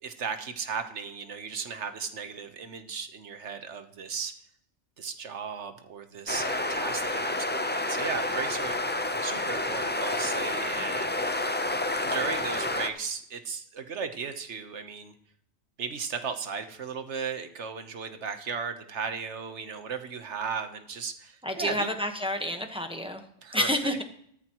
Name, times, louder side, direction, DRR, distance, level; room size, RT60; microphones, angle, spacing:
voice 1, 0.0-4.3 5.0-8.8 9.2-11.4 12.0-15.1 15.8-21.9 23.4-24.0, right 6 dB, 60° right, 8 dB, 1.3 m, -36 dB
sound 1, 6.3-12.9, left 2 dB, 15° left, 0.3 m, -29 dB
voice 2, 21.4-23.2 23.5-24.0, left 1 dB, 5° right, 5 dB, 1.0 m, -29 dB
15.0 x 13.5 x 3.0 m, 0.67 s
omnidirectional pair, 1.4 m